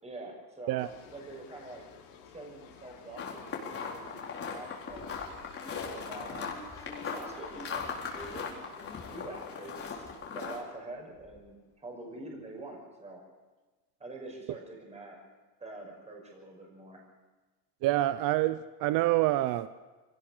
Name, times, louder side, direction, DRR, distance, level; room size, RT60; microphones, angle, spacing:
voice 1, 0.0-1.8 2.3-5.1 5.9-6.6 6.9-8.5 9.1-10.1 10.3-13.2 14.0-15.2 15.6-17.0, right 2 dB, 15° right, 0 dB, 5.8 m, -45 dB
sound 1, 0.8-9.5, left 7 dB, 70° left, 5.0 m, -52 dB
sound 2, 3.2-10.6, left 5 dB, 30° left, 4.2 m, -39 dB
sound 3, 4.9-9.4 9.6-10.5 10.9-11.0 11.2-11.4, left 2 dB, 5° left, 4.0 m, -51 dB
voice 2, 17.8-19.7, right 16 dB, 45° right, 14 dB, 0.7 m, -27 dB
23.0 x 18.0 x 6.7 m, 1.2 s
supercardioid pair, 130°, 46 cm